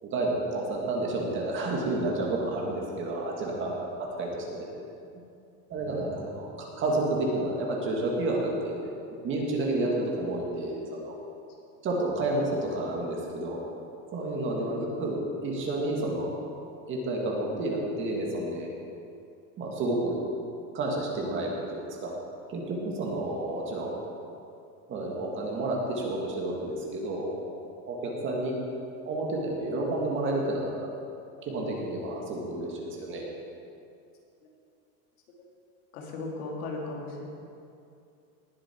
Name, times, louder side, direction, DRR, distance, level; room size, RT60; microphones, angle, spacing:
voice 1, 0.0-4.7 5.7-8.7 9.2-11.2 11.8-13.6 14.1-16.3 16.9-18.7 19.6-20.2 20.7-22.1 22.5-24.0 24.9-27.5 27.9-28.5 29.1-30.9 31.4-33.3, right 2 dB, 25° right, -1 dB, 1.9 m, -30 dB
voice 2, 35.9-37.3, left 3 dB, 80° left, -1 dB, 2.7 m, -36 dB
19.0 x 7.3 x 4.5 m, 2.5 s
supercardioid pair, 165°, 43 cm